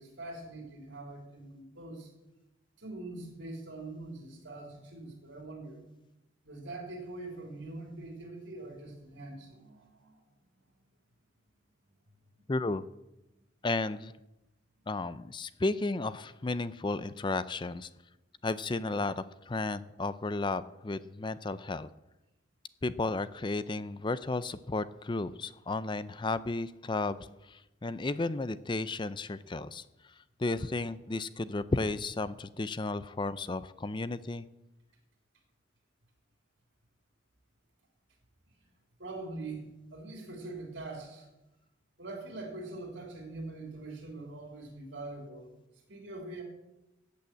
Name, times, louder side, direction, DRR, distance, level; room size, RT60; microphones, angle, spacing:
voice 1, 0.0-2.1 2.8-5.8 6.4-10.1 39.0-39.6 39.9-41.3 42.0-45.5 45.9-46.4, right 2 dB, 65° right, 1 dB, 3.7 m, -43 dB
voice 2, 12.5-12.8 13.6-14.1 14.9-17.9 18.4-21.9 22.8-27.2 27.5-29.8 30.4-34.4, left 2 dB, 25° left, 15 dB, 0.4 m, -33 dB
15.0 x 8.4 x 7.8 m, 0.94 s
head